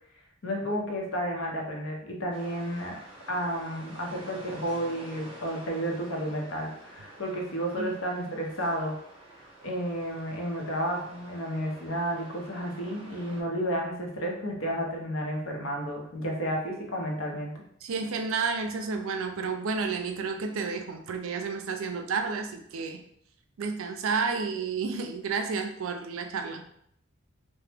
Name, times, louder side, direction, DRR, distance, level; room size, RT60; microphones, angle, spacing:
voice 1, 0.4-3.0 3.3-8.9 9.6-17.5, equal, 65° left, 0 dB, 0.7 m, -32 dB
sound 1, 2.3-13.4, right 1 dB, 25° right, 0.8 m, -49 dB
voice 2, 17.8-23.0 23.6-26.6, right 5 dB, 70° right, 5 dB, 0.4 m, -31 dB
2.8 x 2.1 x 3.3 m, 0.69 s
head